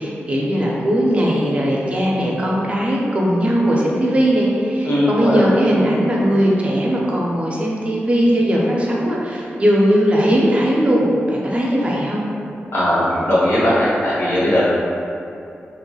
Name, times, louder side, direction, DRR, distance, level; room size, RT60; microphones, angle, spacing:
voice 1, 0.0-12.2, equal, 30° right, -4 dB, 0.5 m, -18 dB
voice 2, 4.8-5.4 12.7-14.6, left 1 dB, 70° left, -8 dB, 0.9 m, -18 dB
3.0 x 2.9 x 2.3 m, 2.7 s
wide cardioid pair, 135°, 4 cm